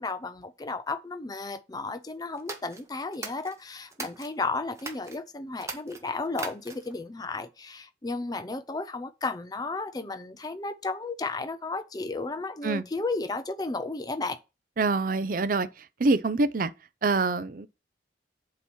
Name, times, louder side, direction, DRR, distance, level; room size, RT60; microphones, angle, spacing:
voice 1, 0.0-14.4, left 3 dB, 20° left, 0.5 m, -33 dB
sound 1, 2.4-4.3 4.8-5.2 5.6-7.0, right 3 dB, 15° right, 0.8 m, -40 dB
voice 2, 14.8-15.7 16.0-16.7 17.0-17.7, right 3 dB, 50° right, 0.5 m, -25 dB
8.1 x 3.0 x 6.2 m
head